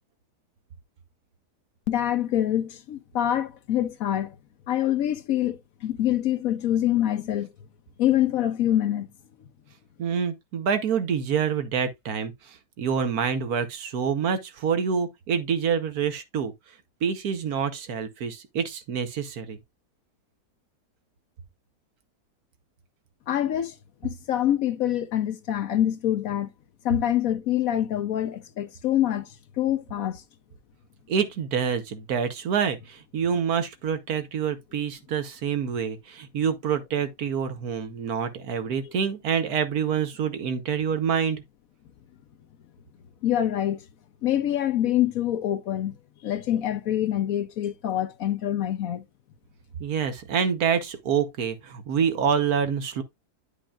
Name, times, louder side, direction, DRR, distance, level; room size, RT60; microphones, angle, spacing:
voice 1, 1.9-4.4 4.7-7.5 8.0-9.1 23.3-23.7 24.0-26.5 26.8-30.2 38.8-38.9 43.2-43.8 44.2-45.9 46.2-49.0, left 12 dB, 65° left, 1.0 m, -25 dB
voice 2, 10.0-16.5 17.0-19.6 31.1-41.4 49.8-53.0, right 7 dB, 65° right, 1.4 m, -27 dB
10.0 x 5.3 x 2.3 m
omnidirectional pair, 1.8 m